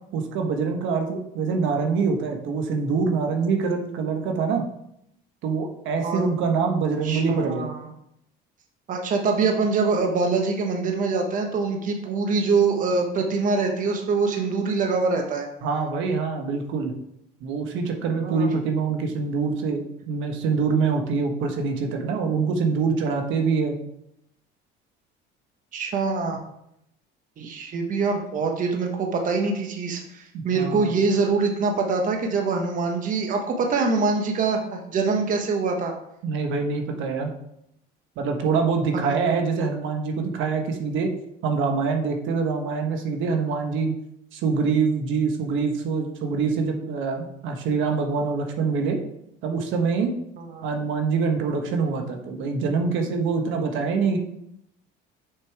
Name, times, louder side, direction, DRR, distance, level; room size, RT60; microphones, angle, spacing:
voice 1, 0.1-4.6 5.4-7.7 15.6-16.9 17.4-23.8 30.3-30.9 36.2-37.3 38.2-41.1 41.4-44.0 44.3-49.0 49.4-50.1 50.6-54.2, right 5 dB, 65° right, 3 dB, 1.3 m, -25 dB
voice 2, 7.0-7.8 8.9-15.5 18.2-18.5 25.7-26.4 27.4-35.9 38.9-39.1 50.4-50.6, right 4 dB, 40° right, 3 dB, 1.1 m, -24 dB
6.6 x 5.3 x 4.7 m, 0.77 s
cardioid pair, 130°, 21 cm